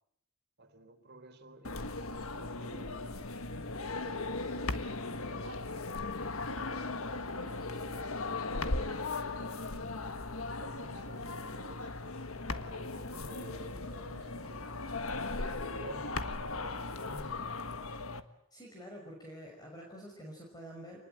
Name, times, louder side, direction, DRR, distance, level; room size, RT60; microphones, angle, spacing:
voice 1, 0.6-3.0 4.0-10.1 10.6-11.9 12.4-14.7 15.5-17.5, right 1 dB, 50° right, 6 dB, 3.8 m, -53 dB
sound 1, 1.6-18.2, left 3 dB, 75° left, 1.5 m, -38 dB
voice 2, 18.5-21.0, equal, 20° left, 0 dB, 5.6 m, -48 dB
27.0 x 20.5 x 9.0 m, 0.74 s
head